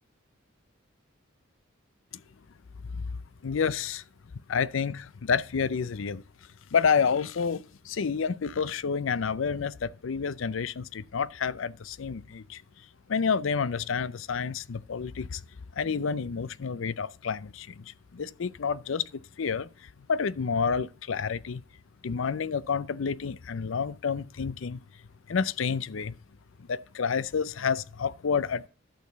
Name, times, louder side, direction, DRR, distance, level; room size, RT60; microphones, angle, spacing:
voice 1, 3.4-4.0 4.5-6.2 6.7-12.6 13.1-15.4 15.8-19.1 19.4-19.7 20.1-21.6 22.0-24.8 25.3-26.1 26.7-28.7, left 6 dB, 75° left, 0.5 m, -29 dB
11.5 x 6.7 x 4.0 m
head